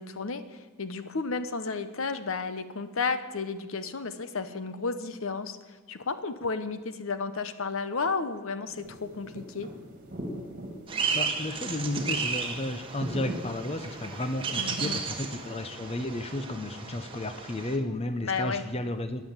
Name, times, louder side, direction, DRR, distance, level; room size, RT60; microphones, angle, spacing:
voice 1, 0.0-5.6 5.9-9.7 14.6-15.0 18.2-18.6, left 4 dB, 65° left, 11 dB, 1.0 m, -32 dB
sound 1, 8.7-15.8, equal, 40° right, 2.0 m, -42 dB
sound 2, 10.9-17.8, right 5 dB, 25° right, 1.5 m, -34 dB
voice 2, 11.1-19.3, left 1 dB, 30° left, 10 dB, 0.7 m, -33 dB
13.5 x 9.6 x 8.8 m, 1.4 s
head